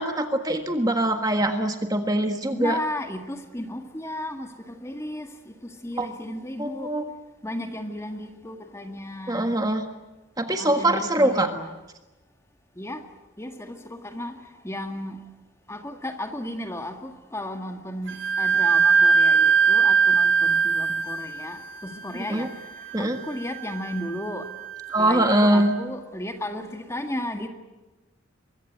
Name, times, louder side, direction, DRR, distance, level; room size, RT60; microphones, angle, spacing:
voice 1, 0.0-2.8 6.0-6.1 6.6-7.0 9.3-9.8 10.4-11.5 22.3-22.5 22.9-23.2 24.9-25.7, right 1 dB, 20° right, 1.6 m, -23 dB
voice 2, 2.5-6.9 7.4-9.6 10.6-11.7 12.8-13.0 13.4-15.2 15.7-24.5 25.0-27.5, left 1 dB, 15° left, 1.8 m, -34 dB
Wind instrument woodwind instrument, 18.1-25.5, right 5 dB, 70° right, 1.8 m, -22 dB
24.0 x 23.0 x 9.2 m
head